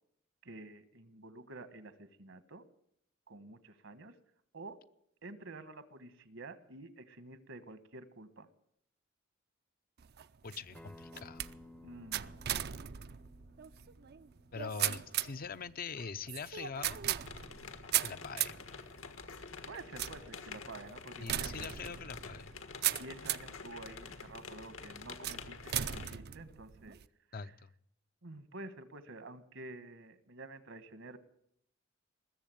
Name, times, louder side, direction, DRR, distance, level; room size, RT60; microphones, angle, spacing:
voice 1, 0.4-2.6 3.3-4.2 4.5-4.8 5.2-8.5 11.8-12.3 19.4-21.7 23.0-27.0 27.4-27.5 28.2-31.2, right 2 dB, 70° right, 13 dB, 1.3 m, -49 dB
sound 1, 10.0-23.6 24.2-24.6 25.2-27.1, right 12 dB, 55° right, 0.5 m, -38 dB
voice 2, 10.4-11.5 14.5-17.0 18.0-18.6 21.2-22.5 27.3-27.7, left 5 dB, 45° left, 12 dB, 0.6 m, -43 dB
Acoustic guitar, 10.7-15.9, left 2 dB, 5° left, 0.6 m, -58 dB
sound 2, 17.2-26.2, left 4 dB, 80° left, 1.6 m, -48 dB
20.5 x 7.5 x 9.0 m, 0.71 s
head